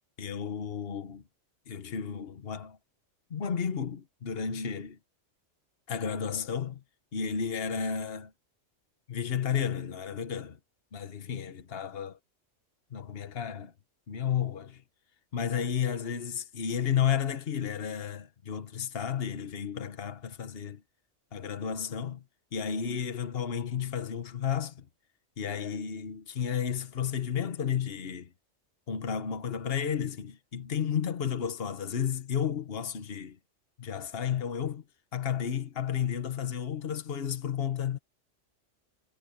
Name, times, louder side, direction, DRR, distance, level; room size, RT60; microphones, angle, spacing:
voice 1, 0.2-1.2 1.7-2.8 3.3-5.0 5.9-6.8 7.1-8.3 9.1-10.6 10.9-12.2 12.9-13.7 14.1-14.8 15.3-20.8 21.3-22.2 22.5-24.9 25.4-28.3 28.9-33.4 33.8-34.8 35.1-38.0, left 8 dB, 55° left, 1.4 m, -32 dB
omnidirectional pair, 1.3 m